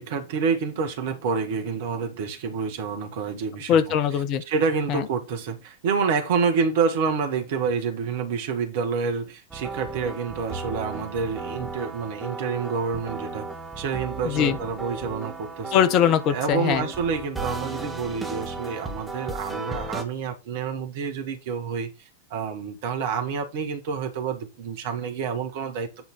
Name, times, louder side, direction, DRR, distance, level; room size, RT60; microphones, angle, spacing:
voice 1, 0.0-3.8 4.5-13.5 13.8-15.8 16.3-21.9 22.3-25.9, right 5 dB, 50° right, 2.0 m, -28 dB
voice 2, 3.7-4.4 4.9-5.1 14.2-14.6 15.7-16.8, left 9 dB, 40° left, 1.1 m, -21 dB
sound 1, 9.5-20.0, right 3 dB, 10° right, 2.1 m, -35 dB
9.6 x 4.0 x 5.8 m
figure-of-eight pair, 90°, 0 cm